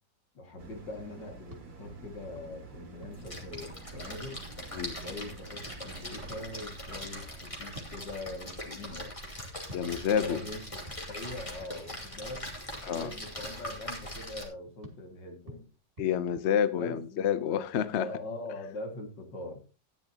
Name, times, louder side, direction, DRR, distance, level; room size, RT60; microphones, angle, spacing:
voice 1, 0.3-4.4 5.0-9.3 10.0-10.6 11.1-12.5 12.8-15.7 16.8-19.6, left 2 dB, 70° left, 2.8 m, -42 dB
sound 1, 0.6-11.3 11.7-11.8, right 3 dB, 50° right, 2.3 m, -51 dB
sound 2, 1.4-5.3 7.6-12.5 14.8-17.2, equal, 30° right, 2.8 m, -53 dB
Splash splatter, 3.1-14.4, left 1 dB, 15° left, 2.6 m, -41 dB
voice 2, 9.7-10.4 12.8-13.1 16.0-18.1, left 8 dB, 55° left, 0.8 m, -28 dB
14.0 x 10.5 x 2.9 m
omnidirectional pair, 2.0 m